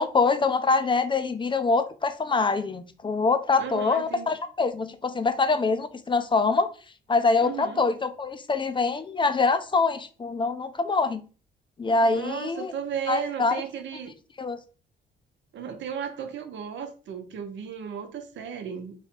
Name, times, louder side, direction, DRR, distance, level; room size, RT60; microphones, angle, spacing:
voice 1, 0.0-6.7 7.1-11.2 11.8-12.7 13.1-13.6 14.4-14.6, left 4 dB, 25° left, 0.5 m, -24 dB
voice 2, 3.6-4.3 7.4-7.8 12.1-14.1 15.5-18.9, right 7 dB, 70° right, 0.8 m, -35 dB
3.2 x 2.8 x 4.3 m
cardioid pair, 90°, 20 cm